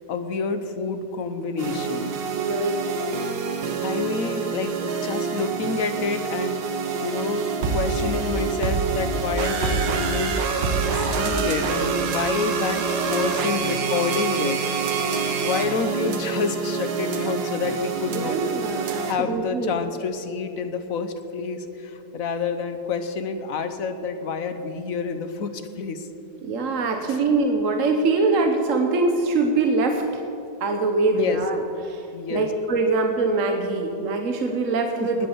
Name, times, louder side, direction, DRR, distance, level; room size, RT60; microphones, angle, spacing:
voice 1, 0.1-2.1 3.8-4.8 5.0-6.6 7.0-12.8 13.1-14.6 15.4-18.4 18.8-26.1 27.0-27.2 31.1-31.4 32.1-32.5 35.0-35.3, left 5 dB, 55° left, 9 dB, 1.2 m, -28 dB
sound 1, 1.6-19.1, right 5 dB, 90° right, 1.9 m, -26 dB
voice 2, 2.3-2.8 18.1-19.8 26.4-30.0 30.6-31.6 31.9-32.0 32.3-35.3, right 3 dB, 50° right, 4 dB, 1.3 m, -23 dB
19.5 x 8.3 x 7.2 m, 2.7 s
omnidirectional pair, 1.9 m